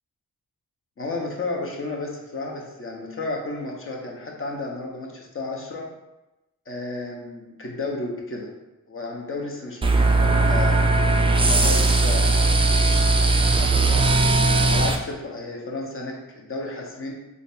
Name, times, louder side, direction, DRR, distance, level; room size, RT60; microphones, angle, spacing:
voice 1, 1.0-5.9 6.7-8.5 8.9-10.8 11.4-14.1 14.7-17.1, left 2 dB, 35° left, -1 dB, 0.8 m, -33 dB
sound 1, 9.8-15.0, right 2 dB, 15° right, 0.3 m, -19 dB
3.8 x 2.2 x 2.5 m, 1.0 s
supercardioid pair, 40°, 37 cm